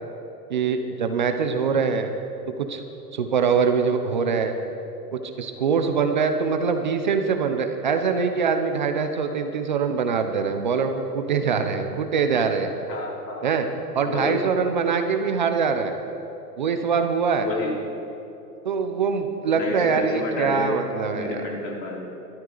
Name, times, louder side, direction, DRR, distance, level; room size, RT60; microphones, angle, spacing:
voice 1, 0.5-2.1 2.5-2.8 3.1-4.6 5.1-12.7 13.4-13.7 13.9-15.9 16.6-17.5 18.6-21.4, right 5 dB, 30° right, 6 dB, 0.6 m, -23 dB
voice 2, 12.9-13.5 14.1-14.4 17.4-17.8 19.5-20.7 21.1-22.1, left 2 dB, 85° left, -2 dB, 4.2 m, -30 dB
23.5 x 13.0 x 3.9 m, 3.0 s
hypercardioid pair, 170°, 48 cm